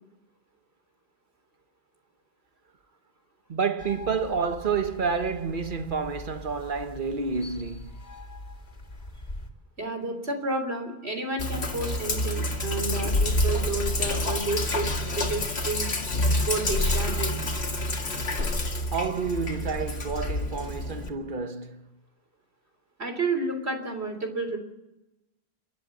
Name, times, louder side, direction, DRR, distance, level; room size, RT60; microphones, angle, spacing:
voice 1, 3.5-7.9 18.9-21.9, right 5 dB, 55° right, 1.3 m, -29 dB
sound 1, 3.8-9.5, left 1 dB, 40° left, 2.5 m, -43 dB
voice 2, 9.8-15.9 16.3-17.3 23.0-24.6, right 2 dB, 85° right, 3.8 m, -31 dB
Sink (filling or washing), 11.4-21.1, left 1 dB, 80° left, 2.2 m, -28 dB
29.5 x 11.0 x 7.9 m
omnidirectional pair, 1.1 m